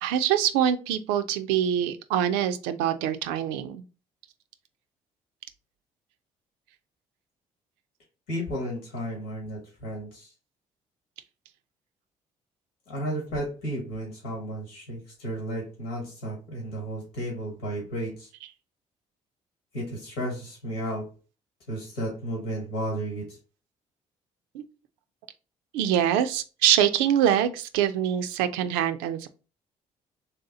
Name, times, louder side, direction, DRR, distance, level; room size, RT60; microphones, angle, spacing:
voice 1, 0.0-3.8 24.5-24.6 25.7-29.3, right 10 dB, 85° right, 10 dB, 0.4 m, -24 dB
voice 2, 8.3-10.3 12.9-18.3 19.7-21.1 21.7-23.4, right 1 dB, 90° left, -1 dB, 1.5 m, -33 dB
3.3 x 2.8 x 3.8 m, 0.34 s
hypercardioid pair, 55°, 16 cm